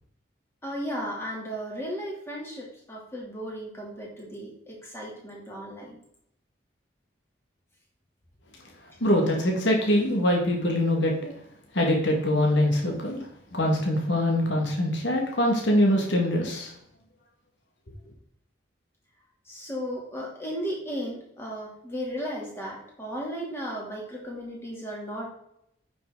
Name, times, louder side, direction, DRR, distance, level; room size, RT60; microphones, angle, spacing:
voice 1, 0.6-6.0 19.4-25.3, equal, 15° left, -3 dB, 2.7 m, -35 dB
voice 2, 9.0-11.1 11.7-13.2 13.5-16.7, left 1 dB, 70° left, 0 dB, 2.0 m, -23 dB
8.9 x 6.1 x 3.9 m, 0.74 s
head